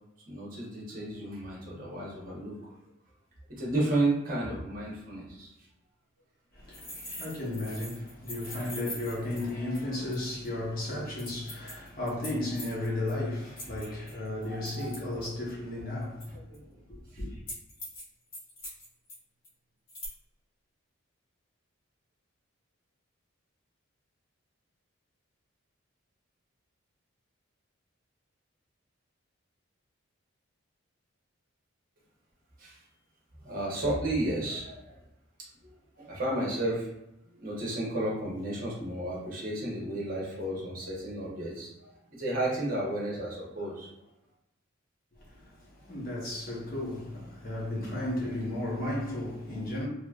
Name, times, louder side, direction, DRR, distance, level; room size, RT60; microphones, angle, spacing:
voice 1, 0.3-2.7 3.6-5.5 14.5-14.9 16.3-16.6 32.6-32.8 33.4-35.0 35.6-36.9 37.3-43.9, right 1 dB, 40° right, 1.1 m, -33 dB
voice 2, 6.5-16.3 16.9-17.4 45.1-49.9, left 1 dB, 45° left, 1.0 m, -34 dB
sound 1, 6.7-10.2 10.4-10.5 11.2-13.1 13.6-15.5 16.2-16.6 17.5-18.0 18.3-19.2 19.4-19.5 19.9-20.1, left 1 dB, 60° left, 1.4 m, -42 dB
3.2 x 3.0 x 2.4 m
head